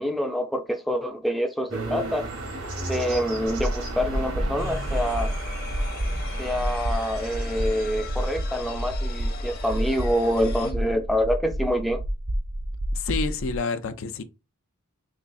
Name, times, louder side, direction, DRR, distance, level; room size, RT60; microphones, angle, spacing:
voice 1, 0.0-2.3 2.9-5.3 6.4-12.0, equal, ahead, 0.4 m, -26 dB
sound 1, 1.7-8.7, right 1 dB, 80° right, 1.6 m, -35 dB
sound 2, 3.4-13.6, equal, 45° right, 0.6 m, -30 dB
sound 3, 4.6-10.7, left 5 dB, 45° left, 0.9 m, -41 dB
voice 2, 12.9-14.2, left 4 dB, 65° left, 0.4 m, -29 dB
3.8 x 3.3 x 2.3 m
head